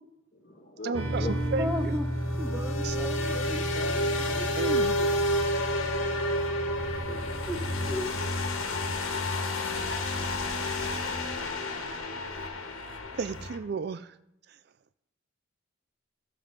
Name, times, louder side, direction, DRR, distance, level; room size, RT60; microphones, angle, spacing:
voice 1, 0.3-1.3 5.5-6.5 6.8-7.9 8.2-8.3, left 2 dB, 40° left, 2 dB, 1.6 m, -44 dB
voice 2, 0.8-2.0 2.8-3.0 4.6-4.9 13.1-14.2 14.5-14.6, right 4 dB, 50° right, 13 dB, 0.3 m, -33 dB
sound 1, 0.9-8.0, equal, 80° right, 1.5 m, -33 dB
sound 2, 1.1-13.6, left 1 dB, 85° left, 1.4 m, -30 dB
voice 3, 1.6-2.0 2.4-5.1 7.5-7.6 7.9-8.2, left 1 dB, 10° right, 3 dB, 0.9 m, -36 dB
14.5 x 5.3 x 5.2 m, 0.82 s
head